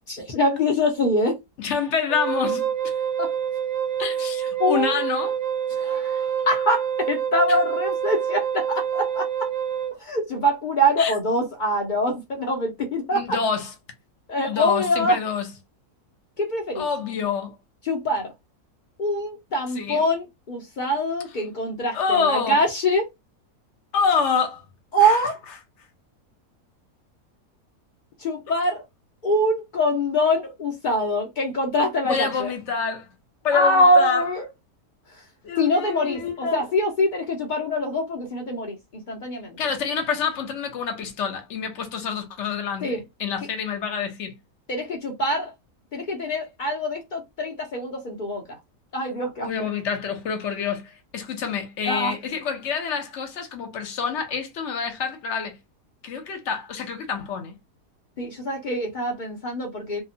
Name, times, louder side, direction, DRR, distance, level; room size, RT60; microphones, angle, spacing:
voice 1, 0.1-1.4 3.2-3.3 4.6-5.0 5.8-9.3 10.0-13.2 14.3-15.2 16.4-16.9 17.8-18.3 19.0-23.1 24.9-25.4 28.2-28.8 29.2-32.5 33.5-34.4 35.1-35.2 35.6-39.6 42.8-43.0 44.7-45.5 45.9-48.6 48.9-49.5 51.8-52.2 58.2-60.0, equal, 85° left, 0.4 m, -24 dB
voice 2, 1.6-2.9 4.0-5.4 11.0-11.1 13.1-13.7 14.5-15.5 16.8-17.6 19.8-20.1 21.9-22.6 23.9-24.6 25.0-25.2 32.0-33.1 33.4-34.2 35.4-36.7 39.6-44.3 49.4-55.6 56.0-57.6, left 6 dB, 60° left, 0.8 m, -27 dB
Wind instrument woodwind instrument, 2.1-9.9, right 8 dB, 45° right, 0.5 m, -27 dB
2.7 x 2.2 x 2.6 m
omnidirectional pair, 1.7 m